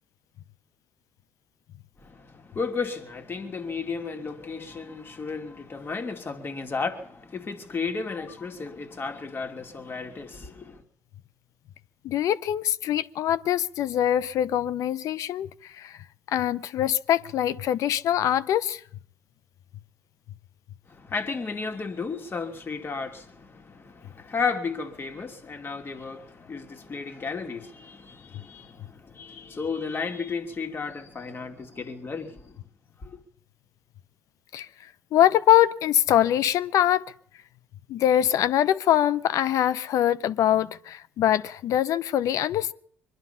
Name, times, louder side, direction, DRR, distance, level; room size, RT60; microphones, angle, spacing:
voice 1, 2.0-10.8 20.9-32.6 33.0-33.2, left 4 dB, 40° left, 2.5 m, -33 dB
voice 2, 12.0-16.0 16.3-18.8 34.5-34.7 35.1-37.0 37.9-42.7, left 11 dB, 65° left, 0.6 m, -23 dB
23.0 x 11.0 x 5.7 m
hypercardioid pair, 60°, 6 cm